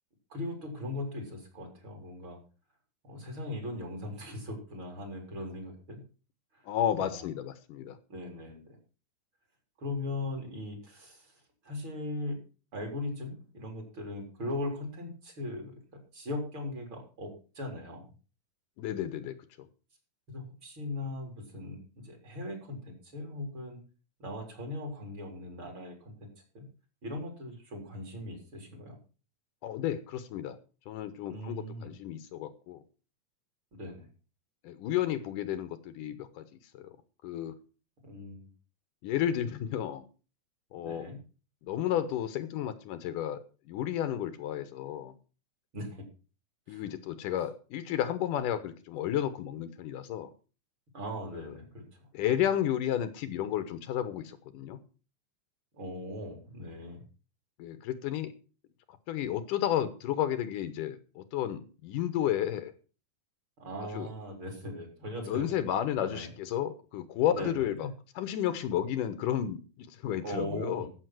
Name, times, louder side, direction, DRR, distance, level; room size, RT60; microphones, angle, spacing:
voice 1, 0.3-2.4 3.0-6.0 6.5-6.7 6.9-7.3 8.1-8.8 9.8-12.4 12.7-15.8 16.1-18.1 20.3-23.8 24.2-26.3 26.5-26.6 27.0-29.0 31.3-31.9 33.7-34.1 38.0-38.5 40.8-41.2 45.7-46.0 46.7-46.9 50.9-52.1 52.3-52.5 55.7-57.0 63.6-65.6 65.9-66.3 67.3-67.7 70.2-70.9, left 1 dB, 35° right, 2 dB, 4.5 m, -39 dB
voice 2, 6.7-8.0 18.8-19.4 29.6-30.6 30.9-32.8 34.6-36.5 36.7-37.0 37.2-37.5 39.0-40.1 40.7-41.1 41.6-43.4 43.7-45.1 46.7-50.3 52.1-54.8 57.6-58.3 59.1-62.7 63.9-64.1 65.2-67.9 68.2-70.9, left 11 dB, 75° left, 11 dB, 2.6 m, -32 dB
14.5 x 7.2 x 6.0 m, 0.36 s
omnidirectional pair, 3.8 m